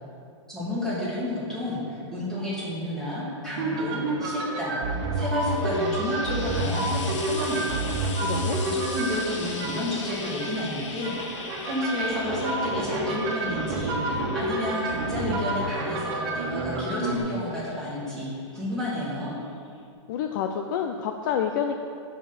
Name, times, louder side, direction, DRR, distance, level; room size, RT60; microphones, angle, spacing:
voice 1, 0.5-7.8 8.6-19.3, left 1 dB, 5° left, -9 dB, 2.7 m, -31 dB
sound 1, 3.6-17.2, right 2 dB, 40° right, 1.7 m, -29 dB
Frying (food), 5.0-18.5 19.4-19.5, left 4 dB, 75° left, 1.3 m, -41 dB
voice 2, 8.2-8.6 20.1-21.8, left 8 dB, 40° left, 5 dB, 0.5 m, -28 dB
14.5 x 6.0 x 4.2 m, 2.3 s
hypercardioid pair, 160°, 16 cm